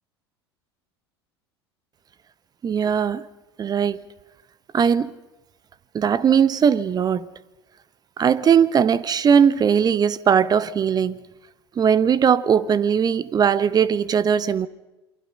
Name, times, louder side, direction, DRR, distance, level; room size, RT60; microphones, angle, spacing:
voice 1, 2.6-3.2 3.6-4.0 4.7-5.1 5.9-7.3 8.2-11.2 11.7-14.7, right 7 dB, 30° right, 1.2 m, -19 dB
28.0 x 24.0 x 5.5 m
figure-of-eight pair, 75°, 14 cm